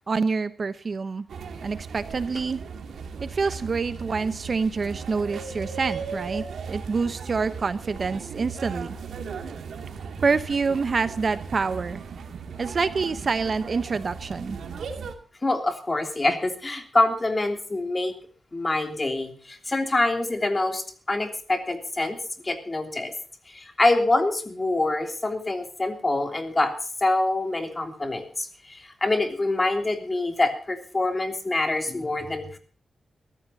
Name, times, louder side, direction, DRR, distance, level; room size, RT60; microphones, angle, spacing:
voice 1, 0.1-1.3 1.6-2.6 3.2-8.9 10.2-12.0 12.6-14.6, right 4 dB, 45° right, 12 dB, 0.9 m, -27 dB
sound 1, 1.3-15.1, right 5 dB, 85° right, 2.5 m, -37 dB
voice 2, 15.4-18.1 18.5-22.2 22.4-23.1 23.5-26.7 27.0-32.6, left 2 dB, 25° left, 6 dB, 3.1 m, -25 dB
23.0 x 14.0 x 2.8 m, 0.42 s
wide cardioid pair, 105°, 0 cm